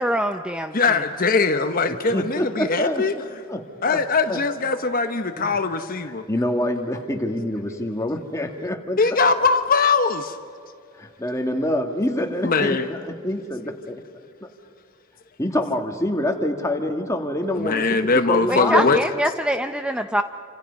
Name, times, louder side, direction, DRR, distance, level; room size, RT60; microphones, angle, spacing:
voice 1, 0.0-0.7 18.5-20.2, equal, 5° right, 7 dB, 0.5 m, -23 dB
voice 2, 0.7-3.1 3.8-6.2 9.0-10.4 12.4-12.9 17.6-19.0, left 4 dB, 40° left, 7 dB, 1.0 m, -21 dB
voice 3, 2.1-3.0 3.5-3.6 3.9-4.0 4.3-4.4 5.4-5.6 6.3-9.0 11.0-14.0 15.4-19.0, left 1 dB, 15° left, 3 dB, 2.0 m, -26 dB
29.0 x 27.0 x 5.4 m, 2.5 s
head